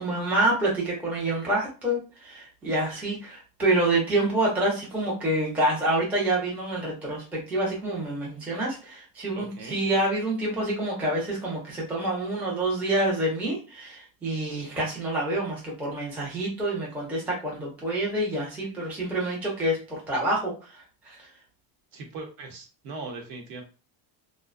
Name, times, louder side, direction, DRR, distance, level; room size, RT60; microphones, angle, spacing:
voice 1, 0.0-21.3, right 1 dB, 5° right, -4 dB, 0.3 m, -27 dB
voice 2, 9.3-9.8 21.9-23.6, right 3 dB, 70° right, 2 dB, 0.9 m, -39 dB
2.5 x 2.1 x 2.4 m, 0.34 s
cardioid pair, 160°, 45 cm